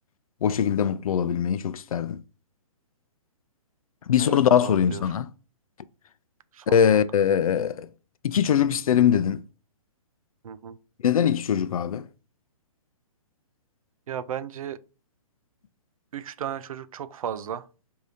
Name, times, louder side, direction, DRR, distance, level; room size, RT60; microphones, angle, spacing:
voice 1, 0.4-2.2 4.1-5.3 6.7-7.9 8.2-9.4 11.0-12.0, left 8 dB, 85° left, 0.4 m, -22 dB
voice 2, 4.2-5.0 6.5-7.0 10.4-10.8 14.1-14.8 16.1-17.7, right 9 dB, 75° right, 0.4 m, -35 dB
4.8 x 2.7 x 2.7 m
hypercardioid pair, 175°, 18 cm